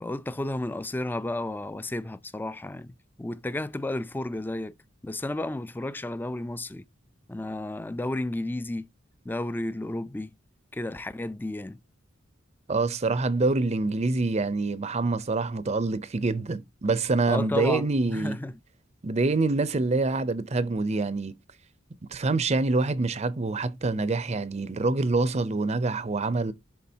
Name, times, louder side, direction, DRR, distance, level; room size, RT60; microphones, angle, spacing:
voice 1, 0.0-4.7 5.0-6.9 7.3-8.9 9.3-10.3 10.7-11.8 17.3-18.5, left 1 dB, 10° left, 0.4 m, -32 dB
voice 2, 12.7-18.4 19.0-21.3 22.1-26.5, right 3 dB, 35° right, 0.6 m, -26 dB
11.0 x 3.7 x 2.8 m
head